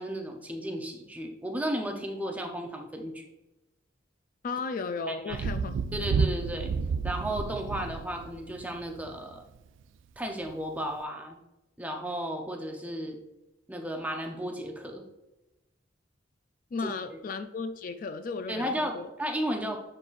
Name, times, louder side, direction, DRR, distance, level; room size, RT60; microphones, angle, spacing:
voice 1, 0.0-3.2 5.1-5.4 5.9-6.7 7.0-9.4 10.2-11.4 11.8-13.2 13.7-15.0 16.8-17.2 18.5-19.8, equal, 10° right, 3 dB, 0.6 m, -34 dB
voice 2, 4.4-5.8 16.7-19.1, left 4 dB, 45° left, 9 dB, 0.3 m, -35 dB
Thunder, 5.3-9.2 10.5-10.6, right 5 dB, 90° right, 0.3 m, -31 dB
9.9 x 3.9 x 2.5 m, 0.98 s
head